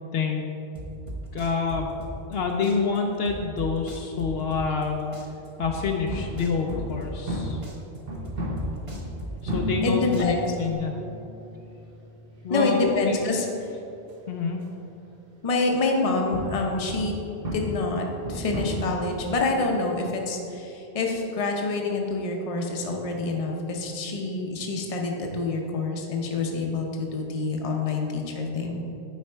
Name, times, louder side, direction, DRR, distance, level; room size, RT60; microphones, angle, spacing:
voice 1, 0.1-0.5 1.3-1.9 2.3-5.0 5.6-7.6 9.4-10.9 12.4-13.2 14.3-14.6, left 5 dB, 70° left, 2 dB, 0.8 m, -27 dB
sound 1, 0.7-2.4 2.6-4.9 5.1-7.4 7.6-9.9 10.1-10.7, right 1 dB, 30° right, 0.9 m, -37 dB
sound 2, 6.1-15.0 15.8-19.4, equal, 60° right, 1.2 m, -34 dB
voice 2, 9.8-10.5 12.5-13.7 15.4-17.2 17.5-28.8, left 3 dB, 35° left, 1 dB, 0.8 m, -27 dB
9.3 x 4.1 x 4.4 m, 2.9 s
omnidirectional pair, 1.1 m